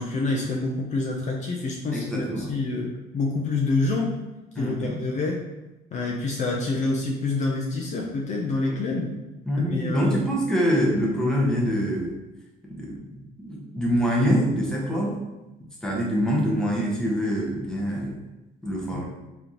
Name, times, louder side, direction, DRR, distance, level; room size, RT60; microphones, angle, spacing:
voice 1, 0.0-4.1 4.6-5.4 5.9-9.1 9.7-10.2 18.9-19.0, left 3 dB, 45° left, -1 dB, 0.6 m, -27 dB
voice 2, 1.9-2.5 4.6-5.0 8.7-8.8 9.5-12.1 12.6-15.2 15.8-18.1 18.6-19.0, equal, 5° left, -3 dB, 1.0 m, -25 dB
3.4 x 3.0 x 3.8 m, 1.0 s
cardioid pair, 110°, 17 cm